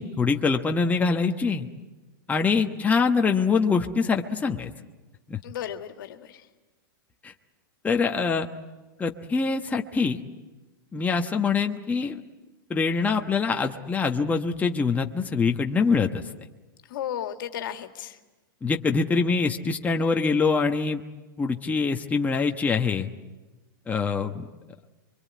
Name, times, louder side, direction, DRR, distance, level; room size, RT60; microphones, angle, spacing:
voice 1, 0.0-1.7 2.3-4.7 5.3-5.4 7.2-7.3 7.8-8.5 9.0-10.2 10.9-12.2 12.7-16.2 18.6-21.0 21.4-23.1 23.9-24.5, left 4 dB, 15° left, 3 dB, 1.2 m, -24 dB
voice 2, 5.4-6.4 16.9-18.2, left 10 dB, 70° left, 7 dB, 2.0 m, -34 dB
25.0 x 24.0 x 8.5 m, 1.2 s
hypercardioid pair, 115°, 12 cm